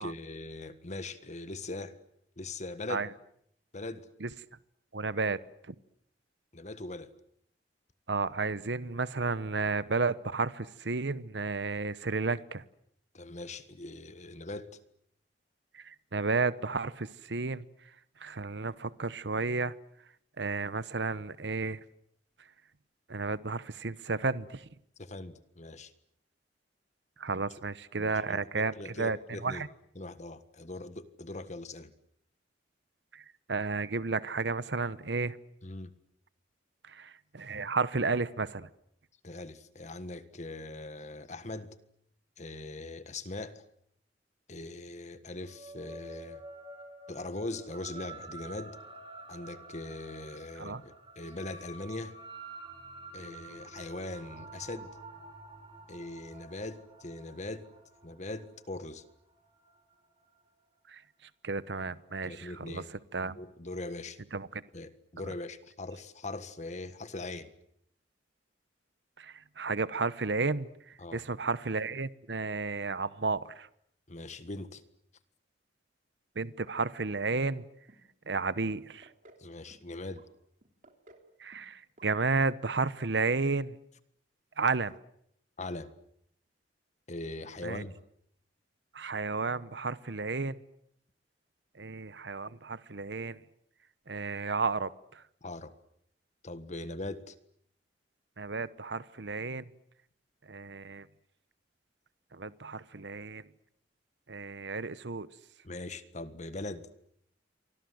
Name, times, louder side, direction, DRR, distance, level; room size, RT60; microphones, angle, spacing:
voice 1, 0.0-2.0 2.4-3.1 3.7-4.1 6.5-7.1 13.1-14.7 25.0-25.9 27.3-27.4 28.0-29.6 29.9-31.9 35.6-35.9 39.2-41.7 42.4-43.6 44.5-46.4 47.1-48.8 49.3-52.2 53.1-55.0 55.9-57.7 58.0-59.0 62.2-62.9 63.2-64.2 64.7-67.5 71.0-71.2 74.1-74.8 79.4-80.3 85.6-85.9 87.1-88.0 95.4-95.7 96.4-97.3 105.6-106.9, left 2 dB, 40° left, 12 dB, 1.7 m, -41 dB
voice 2, 4.9-5.4 5.7-5.8 8.1-12.6 15.7-17.9 18.2-19.7 20.4-21.8 23.1-24.7 27.2-29.7 33.1-35.4 36.8-38.7 50.6-50.8 60.9-62.8 63.1-63.4 64.3-64.6 69.2-73.7 76.3-77.7 78.3-79.1 81.4-83.8 84.6-84.9 87.6-87.8 88.9-90.6 91.7-93.4 94.1-95.2 98.4-99.7 100.4-101.1 102.3-103.4 104.3-105.3, right 4 dB, 75° right, 16 dB, 1.0 m, -32 dB
sound 1, 45.3-60.1, right 2 dB, 30° right, 6.4 m, -49 dB
sound 2, 77.2-77.6 77.9-78.5 78.8-79.4 79.7-80.3 80.6-81.3 81.5-81.7 82.0-82.1 82.4-82.5, right 1 dB, 50° right, 3.2 m, -57 dB
29.0 x 25.0 x 7.9 m, 0.73 s
head